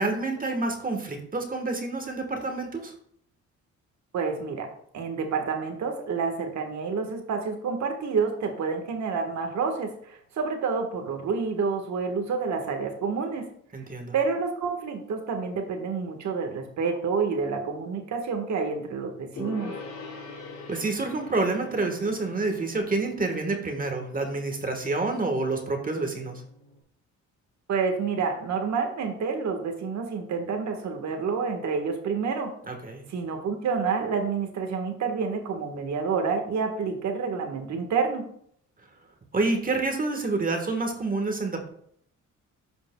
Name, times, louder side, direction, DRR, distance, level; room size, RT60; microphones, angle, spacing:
voice 1, 0.0-2.9 13.7-14.1 20.7-26.4 32.7-33.0 39.3-41.7, right 3 dB, 30° right, 4 dB, 1.4 m, -28 dB
voice 2, 4.1-4.7 4.9-13.5 14.1-19.7 27.7-32.5 33.1-38.2, right 5 dB, 65° right, 4 dB, 1.5 m, -28 dB
Gong, 19.4-26.8, left 3 dB, 70° left, 2.6 m, -44 dB
13.0 x 5.2 x 2.3 m, 0.66 s
cardioid pair, 90°, 30 cm